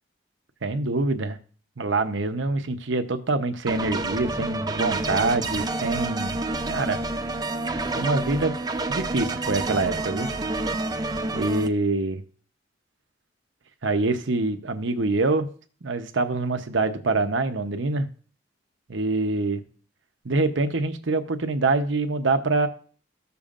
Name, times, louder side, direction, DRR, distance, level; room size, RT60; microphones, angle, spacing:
voice 1, 0.6-1.4 1.8-6.4 6.7-7.0 7.9-8.5 8.9-10.3 11.3-12.2 13.8-15.5 15.8-18.1 18.9-19.6 20.2-22.7, right 3 dB, 75° right, 8 dB, 0.9 m, -25 dB
sound 1, 3.7-11.7, right 2 dB, 20° right, 0.5 m, -28 dB
13.5 x 6.9 x 2.5 m, 0.42 s
head